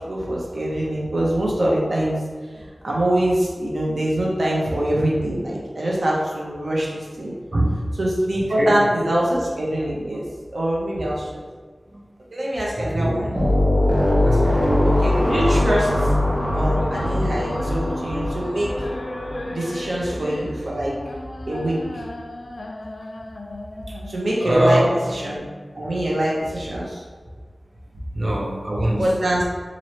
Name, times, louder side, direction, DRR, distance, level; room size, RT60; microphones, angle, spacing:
voice 1, 0.1-2.2 2.6-7.3 8.0-10.2 10.5-11.4 12.3-13.4 14.9-15.9 16.5-18.7 19.5-21.0 21.5-21.8 24.1-24.8 25.1-25.4 25.7-27.0 29.0-29.4, right 1 dB, 80° right, -4 dB, 0.9 m, -24 dB
voice 2, 7.5-7.8 8.6-8.9 11.9-12.0 12.7-13.2 14.2-14.7 16.6-16.7 23.9-24.0 24.4-25.0 28.1-29.1, right 1 dB, 45° right, -2 dB, 0.7 m, -23 dB
sound 1, 13.4-19.8, left 1 dB, 10° right, 1.0 m, -21 dB
sound 2, 16.7-25.7, left 1 dB, 85° left, 0.3 m, -35 dB
3.0 x 2.7 x 4.2 m, 1.5 s
wide cardioid pair, 75°, 0 cm